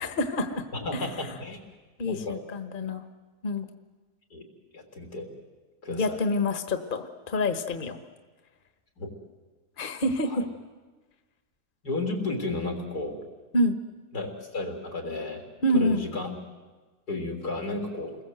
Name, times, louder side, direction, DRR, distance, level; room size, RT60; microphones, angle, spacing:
voice 1, 0.0-0.6 0.9-1.1 2.0-3.0 3.4-3.7 5.9-8.0 9.8-10.3 13.5-13.8 15.6-16.0, left 1 dB, 35° left, 8 dB, 1.4 m, -27 dB
voice 2, 0.7-1.6 2.0-2.4 4.3-4.5 4.7-5.3 5.8-6.2 9.0-9.1 10.3-10.4 11.8-13.2 14.1-15.5 15.7-16.4 17.1-18.2, left 2 dB, 85° left, 3 dB, 4.1 m, -33 dB
29.0 x 21.0 x 7.9 m, 1.3 s
omnidirectional pair, 1.6 m